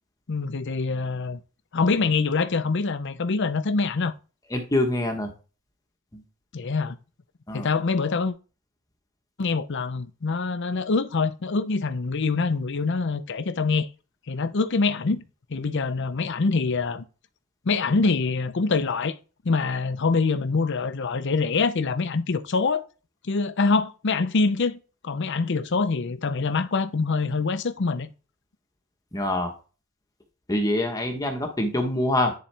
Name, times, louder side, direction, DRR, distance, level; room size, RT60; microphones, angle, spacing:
voice 1, 0.3-1.4 1.7-4.1 6.5-7.0 7.5-8.3 9.4-13.9 14.3-15.2 15.5-17.0 17.6-19.2 19.4-22.8 23.2-28.1, left 4 dB, 55° left, 0.6 m, -25 dB
voice 2, 4.5-5.3 6.1-6.2 7.5-7.7 29.1-29.5 30.5-32.3, left 1 dB, 15° left, 1.0 m, -25 dB
10.0 x 4.1 x 3.3 m
head